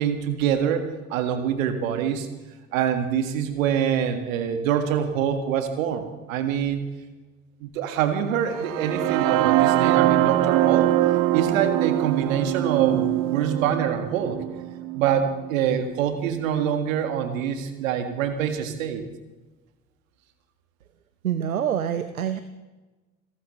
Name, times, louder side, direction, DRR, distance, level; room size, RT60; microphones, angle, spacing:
voice 1, 0.0-2.3 2.7-6.8 7.6-10.9 11.3-14.4 14.9-19.0, right 8 dB, 70° right, 7 dB, 1.9 m, -25 dB
sound 1, 8.5-16.4, right 14 dB, 50° right, 0.9 m, -23 dB
voice 2, 21.2-22.4, right 9 dB, 85° right, 12 dB, 0.7 m, -26 dB
28.0 x 12.5 x 3.2 m, 1.2 s
figure-of-eight pair, 55°, 41 cm